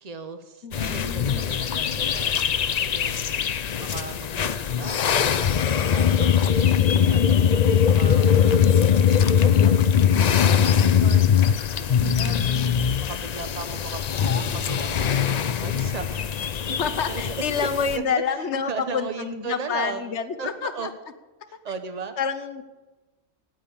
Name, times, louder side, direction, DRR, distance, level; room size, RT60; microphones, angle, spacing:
voice 1, 0.0-2.4 2.9-3.5 3.7-5.3 5.6-8.3 8.7-16.2 16.7-16.8 17.1-20.9 21.5-22.1, right 5 dB, 35° right, 9 dB, 1.0 m, -37 dB
voice 2, 0.6-1.6 12.0-12.8 14.3-14.6 16.8-20.9 22.2-22.6, left 6 dB, 75° left, 10 dB, 1.2 m, -29 dB
sound 1, 0.7-18.0, left 8 dB, 50° left, 0.5 m, -21 dB
9.2 x 9.1 x 8.7 m, 1.1 s
omnidirectional pair, 1.2 m